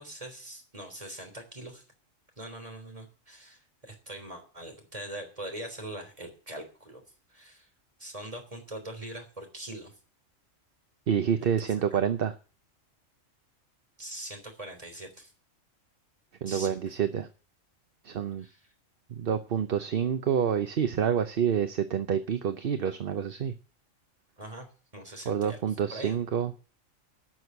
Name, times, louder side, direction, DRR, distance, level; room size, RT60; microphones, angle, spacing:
voice 1, 0.0-1.8 2.4-7.0 7.3-7.7 8.0-9.9 11.4-11.5 11.9-12.0 14.0-15.3 16.5-16.8 18.4-18.6 24.4-24.7 24.9-25.6 25.9-26.2, right 1 dB, 25° right, 4 dB, 3.5 m, -42 dB
voice 2, 11.1-12.3 16.4-17.3 18.0-18.4 19.1-23.5 25.3-26.5, right 8 dB, 50° right, 9 dB, 0.9 m, -28 dB
12.0 x 6.3 x 9.3 m, 0.37 s
omnidirectional pair, 1.3 m